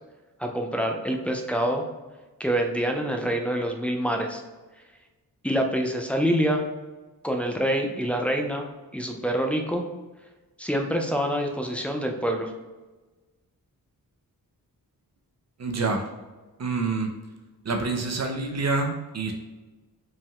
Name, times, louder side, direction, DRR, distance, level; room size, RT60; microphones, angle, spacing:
voice 1, 0.4-1.8 2.4-4.4 5.4-6.6 7.2-8.7 8.9-9.8 10.6-12.5, equal, 5° left, 1 dB, 0.4 m, -26 dB
voice 2, 15.6-16.1 16.6-17.1 17.6-19.3, right 3 dB, 45° right, 3 dB, 0.6 m, -27 dB
5.2 x 3.5 x 2.3 m, 1.2 s
wide cardioid pair, 135°, 38 cm